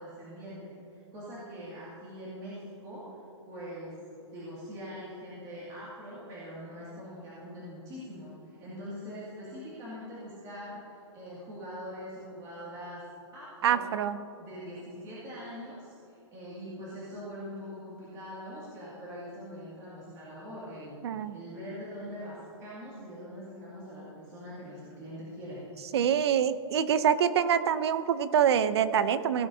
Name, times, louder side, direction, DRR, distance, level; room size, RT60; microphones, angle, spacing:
voice 1, 0.0-3.2 3.4-3.9 4.2-13.0 13.3-13.9 14.4-25.6, equal, 20° right, -9 dB, 2.3 m, -43 dB
voice 2, 13.6-14.2 21.0-21.4 25.9-29.5, right 8 dB, 55° right, 13 dB, 0.6 m, -25 dB
17.5 x 11.0 x 2.7 m, 3.0 s
hypercardioid pair, 160°, 16 cm